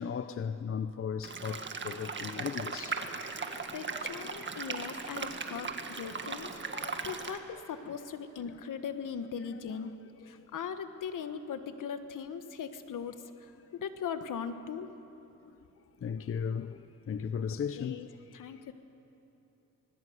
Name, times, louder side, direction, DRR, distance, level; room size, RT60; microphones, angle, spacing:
voice 1, 0.0-3.1 3.4-3.5 6.1-6.2 6.7-7.3 7.9-8.0 9.7-9.8 10.2-10.4 16.0-16.8 17.1-18.1, left 7 dB, 40° left, 0.7 m, -36 dB
sound 1, 1.2-7.4, right 4 dB, 35° right, 1.8 m, -38 dB
voice 2, 3.7-6.5 7.0-9.9 10.3-13.2 13.7-14.9 17.8-18.1 18.3-18.7, left 7 dB, 70° left, 1.6 m, -39 dB
25.0 x 21.0 x 8.1 m
cardioid pair, 90°, 33 cm